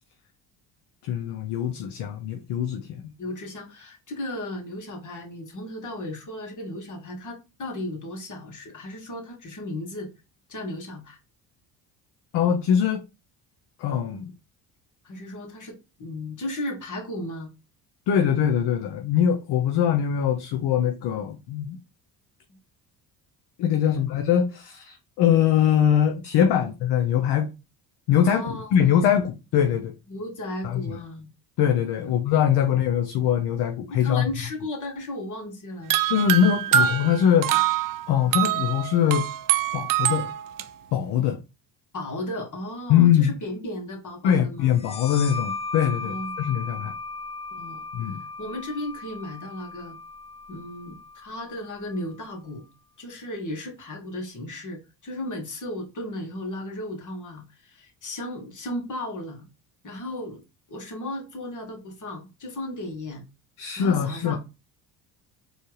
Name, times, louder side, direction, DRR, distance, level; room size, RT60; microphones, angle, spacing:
voice 1, 1.0-3.0 12.3-13.0 13.8-14.3 18.1-21.8 23.6-27.5 28.1-29.9 30.6-31.0 31.6-34.2 36.1-37.5 38.1-39.3 39.7-40.3 40.9-41.4 42.9-43.3 44.2-46.9 47.9-48.2 63.6-64.4, left 9 dB, 60° left, 0.8 m, -22 dB
voice 2, 3.2-10.1 10.5-11.2 15.0-17.5 22.5-22.6 23.9-24.1 26.5-26.7 28.2-29.0 30.1-31.3 32.0-32.2 34.0-36.0 36.7-37.0 41.9-44.7 46.0-46.3 47.5-50.0 50.5-52.6 53.0-59.5 59.8-60.4 60.7-63.2 63.8-64.4, left 1 dB, 40° left, 2.0 m, -35 dB
sound 1, 35.9-40.6, right 11 dB, 50° right, 0.5 m, -24 dB
sound 2, 44.8-52.1, left 3 dB, 15° left, 0.4 m, -37 dB
4.4 x 3.2 x 3.2 m
hypercardioid pair, 65°, 45 cm